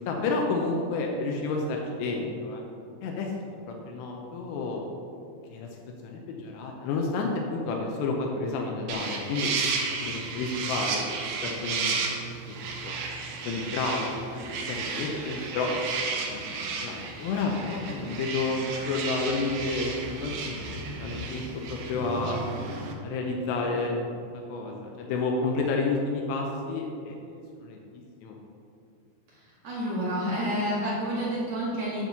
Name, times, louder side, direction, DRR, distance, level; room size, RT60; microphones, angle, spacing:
voice 1, 0.0-2.6 3.0-3.3 3.7-4.8 5.5-9.5 10.0-12.0 12.5-12.6 12.8-12.9 13.4-15.7 16.3-16.4 16.7-20.7 21.0-21.4 21.7-22.4 23.0-24.1 24.5-27.8 28.2-28.4, left 3 dB, 90° left, 0 dB, 2.4 m, -30 dB
sound 1, 8.9-22.9, right 4 dB, 80° right, 2.4 m, -33 dB
voice 2, 29.3-32.0, equal, 60° right, -7 dB, 1.8 m, -29 dB
9.5 x 4.5 x 6.9 m, 2.6 s
omnidirectional pair, 5.9 m